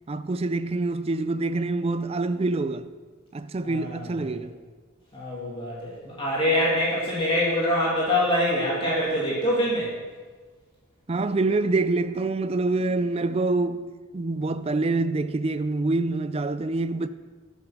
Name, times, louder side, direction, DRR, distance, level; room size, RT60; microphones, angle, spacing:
voice 1, 0.1-2.9 3.3-4.5 11.1-13.9 14.1-17.1, right 3 dB, 30° right, 0.4 m, -26 dB
voice 2, 3.6-4.4 5.1-9.9, left 1 dB, 25° left, 2.5 m, -25 dB
12.5 x 7.3 x 5.9 m
head